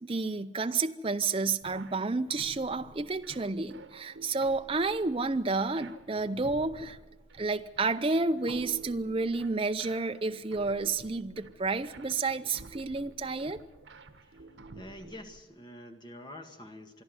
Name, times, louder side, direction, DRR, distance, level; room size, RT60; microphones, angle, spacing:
voice 1, 0.0-7.0 7.4-13.6, right 3 dB, 30° right, 8 dB, 0.6 m, -30 dB
sound 1, 1.6-15.4, right 3 dB, 75° right, 1.5 m, -50 dB
voice 2, 14.7-17.0, left 1 dB, 25° left, 5 dB, 1.8 m, -47 dB
26.0 x 11.0 x 9.4 m, 1.1 s
head